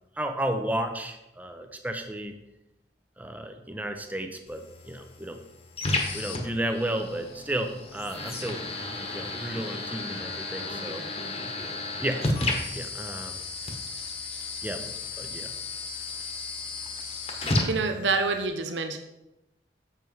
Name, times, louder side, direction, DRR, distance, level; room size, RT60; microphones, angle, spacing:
voice 1, 0.2-2.4 3.2-5.4 6.1-8.6 9.1-11.0 12.0-12.3 12.7-13.4 14.6-14.9 15.2-15.5, right 1 dB, 10° right, 6 dB, 0.7 m, -33 dB
sound 1, 4.5-18.5, left 2 dB, 35° left, 1.2 m, -33 dB
voice 2, 17.4-19.0, right 4 dB, 85° right, 6 dB, 0.8 m, -27 dB
7.5 x 6.7 x 4.6 m, 0.93 s
head